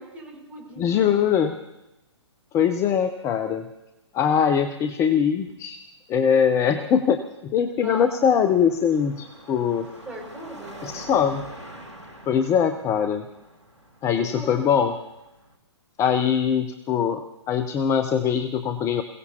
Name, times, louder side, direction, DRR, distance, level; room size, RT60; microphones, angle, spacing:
voice 1, 0.0-1.4 7.8-8.3 10.1-11.1 14.1-14.7, right 1 dB, 10° right, -2 dB, 5.6 m, -40 dB
voice 2, 0.8-1.5 2.5-3.6 4.1-5.8 6.1-9.9 10.8-11.4 12.3-13.2 14.0-15.0 16.0-19.0, left 7 dB, 20° left, 9 dB, 0.7 m, -22 dB
Car passing by / Traffic noise roadway noise / Engine, 8.2-15.6, equal, 85° right, 2.3 m, -45 dB
27.5 x 17.0 x 2.9 m, 0.98 s
figure-of-eight pair, 120°, 15 cm